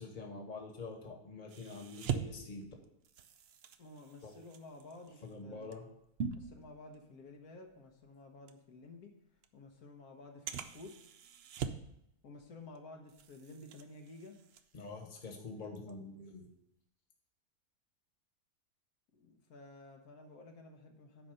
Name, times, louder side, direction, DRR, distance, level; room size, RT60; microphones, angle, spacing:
voice 1, 0.0-2.6 4.2-4.3 5.2-5.9 14.7-16.5, left 3 dB, 30° left, 2 dB, 1.4 m, -46 dB
sound 1, 1.5-7.3 7.7-7.9 8.5-8.6 9.4-9.5 10.5-12.0 12.3-12.8 13.1-15.3 15.6-15.9, right 7 dB, 65° right, 0.6 m, -43 dB
voice 2, 3.8-5.8 6.3-9.2 9.5-11.0 12.2-14.4 19.1-21.3, left 2 dB, 75° left, 2 dB, 1.5 m, -53 dB
9.8 x 4.2 x 6.4 m, 0.77 s
omnidirectional pair, 1.6 m